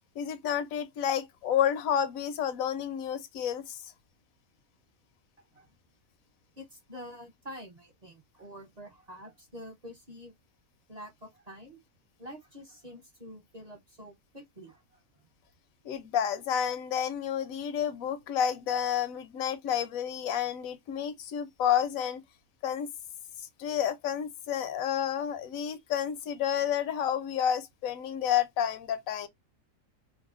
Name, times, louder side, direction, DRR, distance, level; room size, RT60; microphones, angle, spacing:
voice 1, 0.2-3.8 15.8-22.2 22.6-22.9 23.6-29.3, left 9 dB, 80° left, 1.0 m, -30 dB
voice 2, 6.6-10.3 10.9-11.8 12.2-15.3, equal, 35° right, 0.8 m, -47 dB
4.7 x 2.1 x 2.3 m
omnidirectional pair, 1.4 m